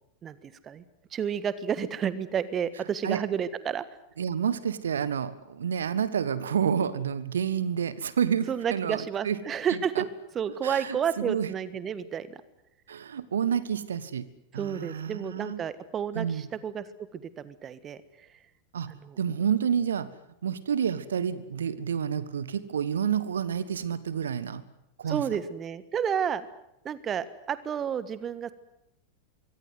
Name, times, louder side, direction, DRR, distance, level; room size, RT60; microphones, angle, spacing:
voice 1, 0.2-0.8 1.1-3.8 8.5-10.1 10.3-12.4 14.5-16.8 17.1-18.3 19.0-19.2 25.1-26.4 26.8-28.5, right 8 dB, 25° right, 15 dB, 1.5 m, -31 dB
voice 2, 4.2-9.4 9.7-10.0 10.6-11.5 12.9-14.3 14.5-15.6 16.1-16.5 18.7-18.9 19.2-20.1 20.4-24.6 25.0-25.2, right 8 dB, 65° right, 16 dB, 1.5 m, -29 dB
25.5 x 23.5 x 8.0 m, 0.83 s
figure-of-eight pair, 90°, 0 cm